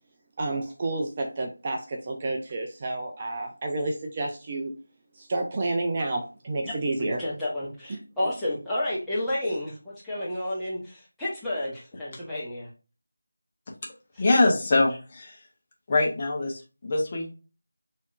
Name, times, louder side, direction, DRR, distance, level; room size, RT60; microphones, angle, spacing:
voice 1, 0.4-4.7 5.2-7.2, right 2 dB, 25° right, 2 dB, 0.5 m, -30 dB
voice 2, 6.6-12.7 14.1-14.2, left 1 dB, ahead, -11 dB, 1.2 m, -31 dB
voice 3, 14.2-15.4 15.9-17.3, left 2 dB, 30° left, 0 dB, 0.9 m, -23 dB
6.0 x 2.8 x 2.6 m, 0.33 s
figure-of-eight pair, 165°, 0 cm